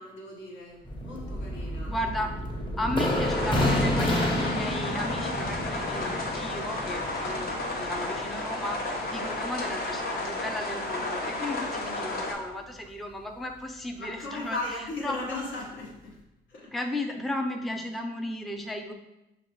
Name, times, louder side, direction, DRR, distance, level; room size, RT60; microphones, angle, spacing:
voice 1, 0.0-1.9 11.9-12.4 14.0-16.2 16.5-16.7, left 2 dB, 75° left, -3 dB, 1.4 m, -37 dB
sound 1, 0.8-10.1 10.4-10.5 10.8-11.0, left 1 dB, 25° left, 1.1 m, -30 dB
voice 2, 1.8-2.3 2.8-14.6 15.0-15.2 16.7-18.9, left 1 dB, ahead, 3 dB, 0.4 m, -34 dB
sound 2, 3.1-12.3, left 2 dB, 50° left, 0.9 m, -32 dB
5.8 x 2.8 x 3.1 m, 0.93 s
cardioid pair, 90°, 20 cm